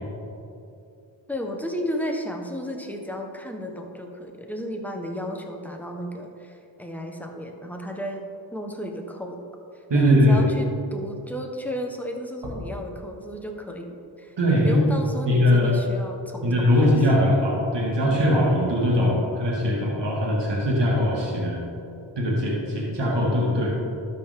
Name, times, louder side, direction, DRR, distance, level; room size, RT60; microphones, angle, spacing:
voice 1, 1.3-8.2 8.5-9.4 9.9-17.0, equal, 5° left, 2 dB, 1.2 m, -33 dB
voice 2, 9.9-10.4 14.4-14.8 15.2-15.7 16.4-21.6 22.2-23.7, left 1 dB, 60° right, -4 dB, 2.2 m, -21 dB
12.5 x 5.4 x 3.7 m, 2.7 s
cardioid pair, 40°, 47 cm